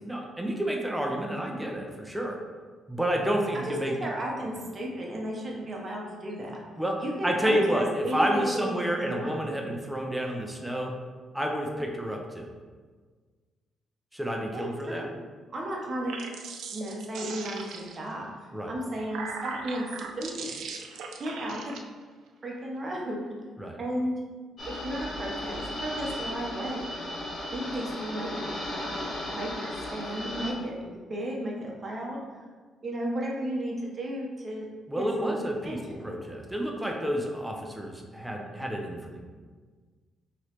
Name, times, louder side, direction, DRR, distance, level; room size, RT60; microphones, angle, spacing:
voice 1, 0.0-2.4 2.9-3.9 6.8-6.9 7.2-10.9 11.3-12.5 14.1-15.1 18.5-18.7 23.6-23.8 34.9-39.2, equal, 5° right, 0 dB, 0.5 m, -29 dB
voice 2, 3.6-6.5 7.0-8.8 9.0-9.7 11.7-11.9 14.5-15.1 15.5-16.1 16.7-19.8 20.2-20.5 21.2-21.8 22.4-23.3 23.8-24.2 24.7-26.9 27.5-29.0 29.3-32.4 32.8-34.7 35.0-36.1, right 1 dB, 35° right, -2 dB, 0.8 m, -34 dB
sound 1, 15.9-18.1 18.8-21.8, right 5 dB, 80° right, 0.3 m, -39 dB
sound 2, 24.6-30.5, left 1 dB, 50° left, 0.7 m, -35 dB
3.0 x 3.0 x 2.9 m, 1.5 s
cardioid pair, 90°, 0 cm